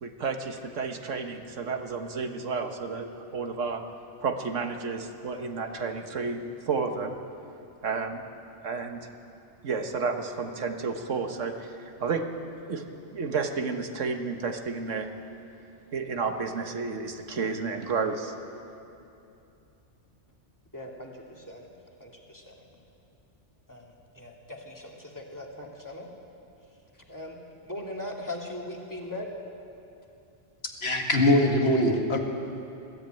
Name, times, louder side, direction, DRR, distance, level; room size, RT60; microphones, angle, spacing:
voice 1, 0.0-3.8 4.2-7.2 7.8-8.3 8.6-9.1 9.6-12.2 12.7-12.8 13.1-15.1 15.9-18.3, right 4 dB, 90° right, 5 dB, 1.6 m, -31 dB
voice 2, 20.7-21.7 22.0-22.5 23.7-26.1 26.9-27.4 27.6-29.3, left 1 dB, 15° left, -1 dB, 2.3 m, -40 dB
voice 3, 30.8-32.2, left 1 dB, 55° left, 2 dB, 2.1 m, -22 dB
20.5 x 14.0 x 9.1 m, 2.8 s
omnidirectional pair, 1.2 m